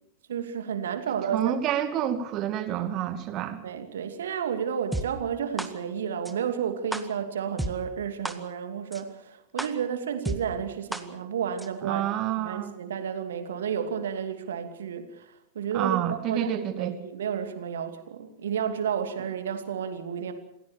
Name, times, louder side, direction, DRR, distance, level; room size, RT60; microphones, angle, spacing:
voice 1, 0.3-1.5 3.6-12.0 12.4-20.3, right 8 dB, 65° right, 7 dB, 2.6 m, -31 dB
voice 2, 1.1-3.6 11.8-12.7 15.7-16.9, right 11 dB, 35° right, 9 dB, 2.3 m, -29 dB
sound 1, 4.9-5.0 5.6-5.7 6.3-6.4 6.9-7.0 7.6-7.7 8.3-8.4 8.9-9.0 9.6-9.7 10.3-10.4 10.9-11.0 11.6-11.7, right 1 dB, 5° right, 1.9 m, -30 dB
27.5 x 16.5 x 7.2 m, 0.83 s
figure-of-eight pair, 90°, 0 cm